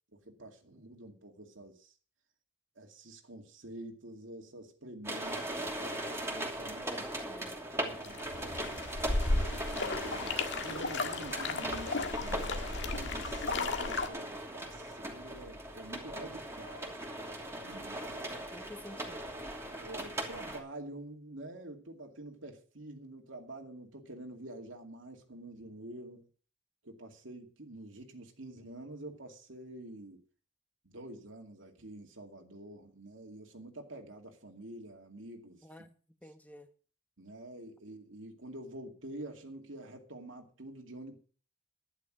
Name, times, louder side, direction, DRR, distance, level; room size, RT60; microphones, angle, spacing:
voice 1, 0.1-1.9 2.8-7.0 7.3-7.4 7.7-8.9 9.7-17.0 17.6-18.4 19.8-26.3 26.8-30.2 30.8-35.7 37.2-41.2, right 1 dB, 85° right, 2.4 m, -48 dB
sound 1, 5.0-20.6, right 1 dB, 15° right, 2.9 m, -39 dB
voice 2, 6.8-7.6 17.7-17.8 18.5-19.3 35.6-35.9 36.2-36.7, left 1 dB, 10° left, 1.5 m, -49 dB
sound 2, 8.0-14.1, left 3 dB, 65° left, 1.7 m, -34 dB
12.0 x 10.5 x 6.1 m
head